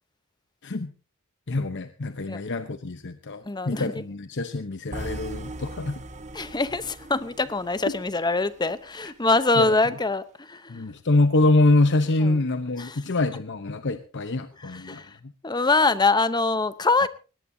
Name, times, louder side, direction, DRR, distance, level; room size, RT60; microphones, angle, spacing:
voice 1, 1.5-6.0 7.9-8.0 9.6-9.8 10.7-15.0, left 2 dB, 55° left, 0.9 m, -25 dB
voice 2, 3.4-4.0 6.3-10.8 12.2-12.4 12.8-13.0 14.6-15.2 15.4-17.1, left 3 dB, 20° left, 0.8 m, -24 dB
sound 1, 4.9-9.0, right 1 dB, 35° right, 1.1 m, -40 dB
20.0 x 18.0 x 2.8 m
head